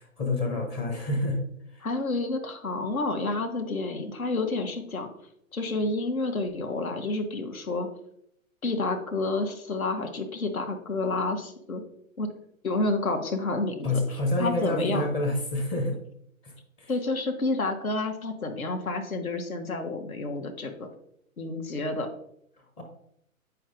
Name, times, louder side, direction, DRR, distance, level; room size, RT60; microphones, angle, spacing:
voice 1, 0.0-1.4 1.7-1.8 13.8-16.0 16.4-16.9 22.8-22.9, left 2 dB, 15° left, 2 dB, 0.6 m, -28 dB
voice 2, 1.8-5.1 5.5-7.9 8.6-11.8 12.2-12.3 12.6-15.1 16.9-20.9 21.4-22.1, left 2 dB, 75° left, 5 dB, 1.2 m, -29 dB
9.1 x 4.6 x 2.5 m, 0.73 s
figure-of-eight pair, 120°, 42 cm